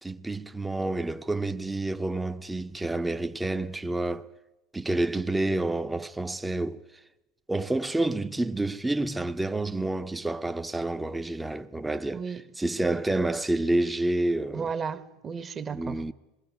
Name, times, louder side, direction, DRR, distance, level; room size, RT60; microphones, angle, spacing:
voice 1, 0.0-4.3 4.7-6.8 7.5-12.2 12.6-14.7 15.7-16.1, right 2 dB, 10° right, 0.6 m, -29 dB
voice 2, 12.1-12.5 12.8-13.0 14.5-16.1, right 6 dB, 30° right, 1.0 m, -34 dB
26.0 x 20.0 x 5.0 m
hypercardioid pair, 85°, 0 cm